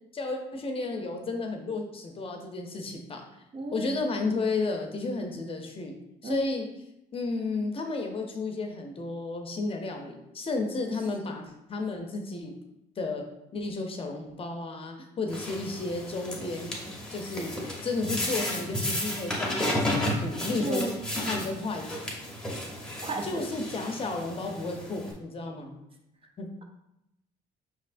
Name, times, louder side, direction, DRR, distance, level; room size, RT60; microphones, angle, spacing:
voice 1, 0.1-3.2 3.7-5.9 6.2-6.6 7.1-11.4 11.7-12.5 13.0-13.2 13.5-16.7 17.1-20.9 21.3-22.2 23.2-25.8 26.4-26.5, left 3 dB, 35° left, 3 dB, 0.7 m, -32 dB
voice 2, 3.5-4.1 6.2-6.4 20.6-21.0 23.0-23.4, right 2 dB, 30° right, 3 dB, 0.6 m, -33 dB
sound 1, 15.3-25.1, left 1 dB, 5° left, 0.9 m, -33 dB
5.4 x 3.2 x 2.5 m, 0.85 s
cardioid pair, 110°, 17 cm